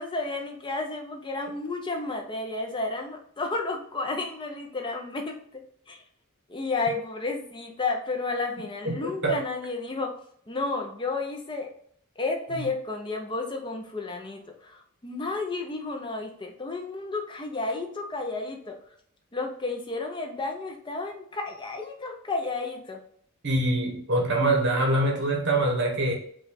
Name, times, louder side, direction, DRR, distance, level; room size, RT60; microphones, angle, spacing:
voice 1, 0.0-5.4 5.9-6.0 6.5-10.1 10.5-11.7 12.2-18.8 19.3-23.0, left 3 dB, 20° left, 0.5 m, -32 dB
voice 2, 23.4-26.1, right 1 dB, 55° right, 1.1 m, -24 dB
4.9 x 2.3 x 4.1 m
head